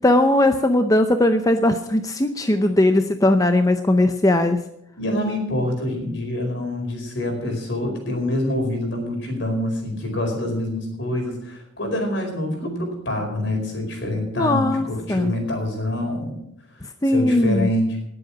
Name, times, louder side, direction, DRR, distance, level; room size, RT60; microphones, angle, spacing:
voice 1, 0.0-4.6 14.4-15.3 17.0-17.7, left 1 dB, 15° left, 7 dB, 0.6 m, -19 dB
voice 2, 5.0-16.4 17.1-17.9, left 1 dB, 65° left, 2 dB, 4.7 m, -26 dB
19.0 x 7.9 x 6.0 m, 0.78 s
head